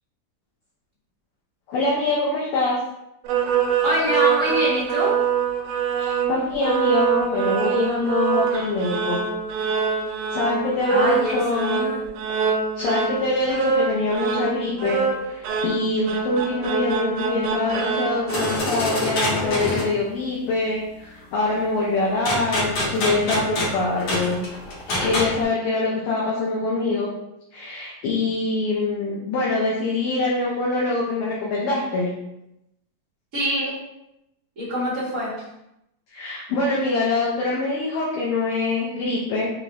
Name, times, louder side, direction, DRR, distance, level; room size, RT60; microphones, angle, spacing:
voice 1, 1.7-2.8 6.0-9.2 10.3-11.6 12.8-24.4 25.0-27.1 27.5-32.1 36.1-39.5, left 2 dB, 75° left, -5 dB, 2.1 m, -24 dB
sound 1, 3.2-18.6, right 7 dB, 80° right, 2.4 m, -24 dB
voice 2, 3.8-5.2 10.9-12.0 33.3-33.8 34.6-35.4, equal, 45° right, -10 dB, 1.0 m, -25 dB
sound 2, 18.3-19.9 22.3-25.4, left 1 dB, 55° left, 2.1 m, -25 dB
6.8 x 2.6 x 2.9 m, 0.86 s
omnidirectional pair, 4.4 m